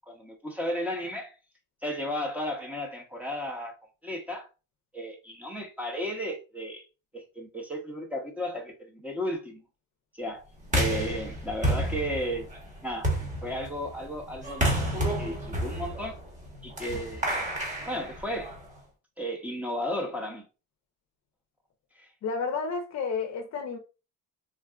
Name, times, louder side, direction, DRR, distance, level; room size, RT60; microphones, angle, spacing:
voice 1, 0.1-1.3 1.8-3.7 4.0-4.5 4.9-6.9 7.1-9.6 10.1-10.5 10.7-12.5 12.8-13.1 13.4-14.7 15.2-16.2 16.6-17.4 17.9-18.5 19.2-20.4 22.0-22.1, equal, 5° right, 0.7 m, -34 dB
sound 1, 10.6-18.8, right 1 dB, 20° right, 1.1 m, -31 dB
voice 2, 22.2-23.8, left 5 dB, 50° left, 0.6 m, -31 dB
3.7 x 2.3 x 2.3 m
cardioid pair, 135°, 36 cm